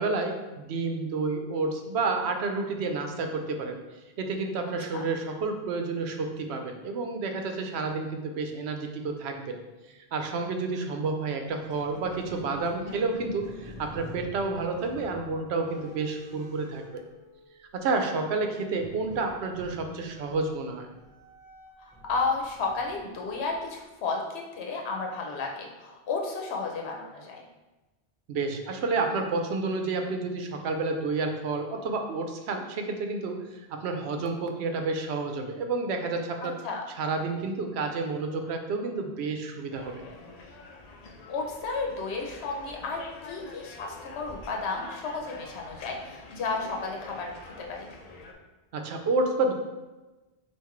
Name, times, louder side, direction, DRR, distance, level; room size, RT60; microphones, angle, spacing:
voice 1, 0.0-3.8 4.2-9.6 10.1-17.0 17.7-20.9 28.3-36.6 37.0-40.1 48.7-49.5, right 3 dB, 85° right, 4 dB, 0.9 m, -30 dB
Squeak, 11.4-17.8 18.7-23.9, equal, 5° right, 1.1 m, -48 dB
voice 2, 22.1-27.4 36.6-36.8 41.3-47.9, left 4 dB, 85° left, 0 dB, 1.0 m, -33 dB
sound 1, 39.7-48.3, left 3 dB, 50° left, 0.5 m, -46 dB
5.6 x 2.5 x 3.1 m, 1.1 s
omnidirectional pair, 1.1 m